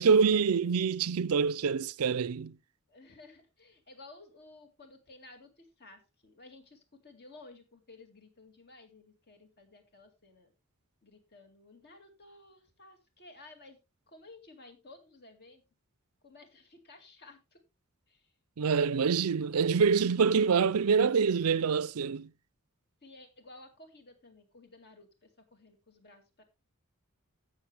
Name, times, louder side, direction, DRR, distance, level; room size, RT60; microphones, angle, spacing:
voice 1, 0.0-2.6 18.6-22.3, right 5 dB, 80° right, 0.5 m, -26 dB
voice 2, 2.9-10.5 11.0-13.8 14.1-15.6 16.2-17.6 18.1-18.3 23.0-26.4, left 2 dB, 50° left, 2.3 m, -55 dB
15.5 x 6.8 x 3.4 m
head